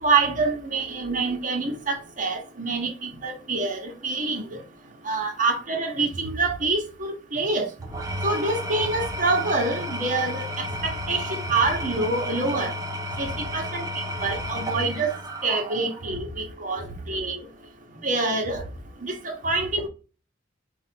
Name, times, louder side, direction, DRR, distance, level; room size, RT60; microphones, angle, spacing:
voice 1, 0.0-4.6 5.0-7.7 8.2-12.7 13.2-15.1 15.4-17.4 18.0-18.6 19.0-19.9, right 3 dB, 45° right, 1.1 m, -26 dB
Engine / Tools, 7.8-16.1, equal, 20° right, 0.6 m, -32 dB
4.7 x 2.5 x 4.5 m
head